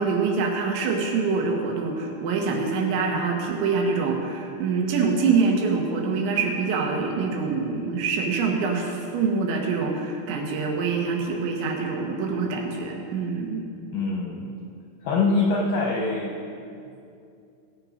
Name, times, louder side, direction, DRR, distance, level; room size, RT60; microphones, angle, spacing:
voice 1, 0.0-13.6, right 4 dB, 75° right, 1 dB, 3.6 m, -25 dB
voice 2, 13.9-14.5 15.0-16.4, left 3 dB, 70° left, -2 dB, 2.2 m, -24 dB
17.5 x 8.1 x 5.1 m, 2.5 s
omnidirectional pair, 5.4 m